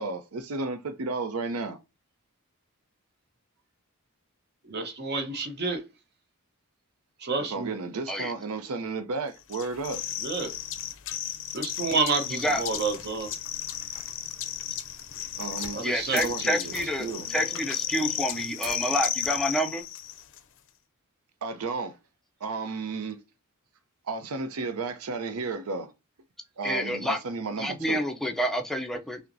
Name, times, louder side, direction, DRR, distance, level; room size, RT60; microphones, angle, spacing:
voice 1, 0.0-1.8 7.5-10.0 15.4-15.9 16.1-16.7 17.0-17.3 21.4-22.0 22.4-23.2 24.1-25.9 26.6-28.0, right 3 dB, 75° right, 0.6 m, -33 dB
voice 2, 4.6-5.8 7.2-7.7 10.2-10.5 11.5-13.3 15.7-16.6, right 4 dB, 50° right, 0.9 m, -29 dB
sound 1, 9.5-20.4, left 11 dB, 60° left, 0.5 m, -34 dB
voice 3, 12.3-12.6 15.8-19.8 26.6-27.2 27.6-29.2, equal, ahead, 0.5 m, -28 dB
sound 2, 12.4-15.9 16.2-16.4 16.7-18.9 19.2-19.8, right 1 dB, 15° right, 1.5 m, -47 dB
5.7 x 2.1 x 2.6 m
head